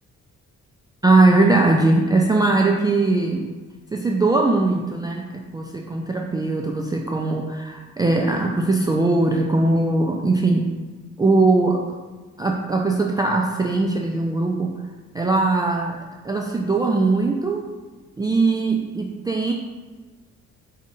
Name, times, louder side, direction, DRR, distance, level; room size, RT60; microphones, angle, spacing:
voice 1, 1.0-3.5 3.9-10.7 11.2-12.0 12.4-14.8 15.1-16.0 16.2-17.7 18.2-19.5, right 2 dB, 15° right, 0 dB, 0.3 m, -20 dB
5.0 x 2.8 x 3.7 m, 1.3 s
cardioid pair, 90°, 30 cm